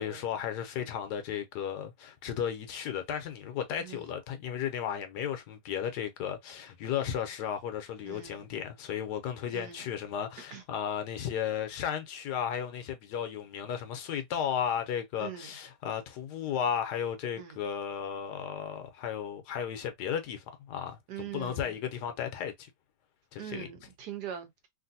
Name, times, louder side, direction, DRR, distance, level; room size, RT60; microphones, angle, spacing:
voice 1, 0.0-22.7 23.3-23.7, left 8 dB, 75° left, 1.2 m, -34 dB
voice 2, 3.8-4.1 8.1-8.4 9.5-9.8 10.5-10.6 15.2-15.5 17.4-17.6 21.1-21.8 23.4-24.7, right 10 dB, 75° right, 1.4 m, -42 dB
3.2 x 2.6 x 2.6 m
omnidirectional pair, 1.8 m